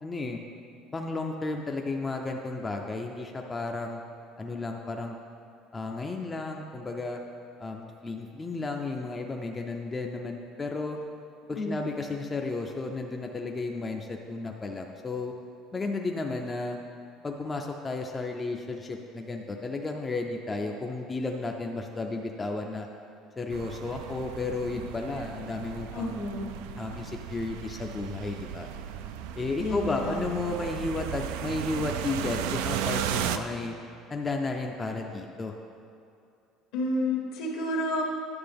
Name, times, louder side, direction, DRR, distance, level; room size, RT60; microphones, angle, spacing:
voice 1, 0.0-0.4 0.9-4.0 4.4-5.2 5.7-7.2 7.6-11.0 11.5-15.3 15.7-16.8 17.2-22.9 23.4-26.2 26.8-28.7 29.4-33.7 34.1-35.5, left 3 dB, 20° left, 2 dB, 0.4 m, -33 dB
voice 2, 11.5-11.9 25.9-26.5 29.6-30.2 36.7-38.0, left 1 dB, 75° left, -1 dB, 1.5 m, -30 dB
sound 1, 23.5-33.4, right 10 dB, 90° right, 0.3 m, -35 dB
9.6 x 6.6 x 3.5 m, 2.5 s
cardioid pair, 130°, 0 cm